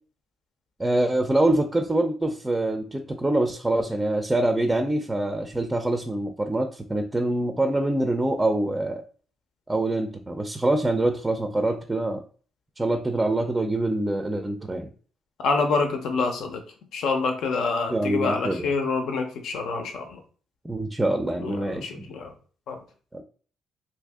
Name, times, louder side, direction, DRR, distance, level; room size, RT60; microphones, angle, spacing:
voice 1, 0.8-9.0 9.7-12.2 12.8-14.9 17.9-18.7 20.6-22.1 23.1-23.2, right 1 dB, 15° right, 5 dB, 0.4 m, -25 dB
voice 2, 15.4-16.6 16.9-20.2 21.4-22.3 22.7-22.8, left 4 dB, 75° left, 5 dB, 0.7 m, -26 dB
2.8 x 2.6 x 3.5 m, 0.42 s
cardioid pair, 90°, 0 cm